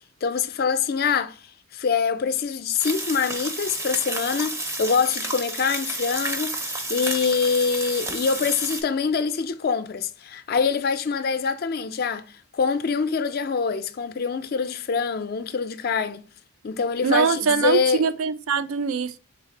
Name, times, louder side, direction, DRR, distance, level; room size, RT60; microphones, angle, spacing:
voice 1, 0.2-1.4 1.7-12.3 12.5-16.2 16.6-18.1, left 5 dB, 45° left, 0.4 m, -25 dB
sound 1, 2.8-8.8, right 2 dB, 15° right, 0.5 m, -31 dB
voice 2, 17.0-19.2, right 5 dB, 75° right, 0.4 m, -23 dB
3.9 x 3.2 x 2.8 m
head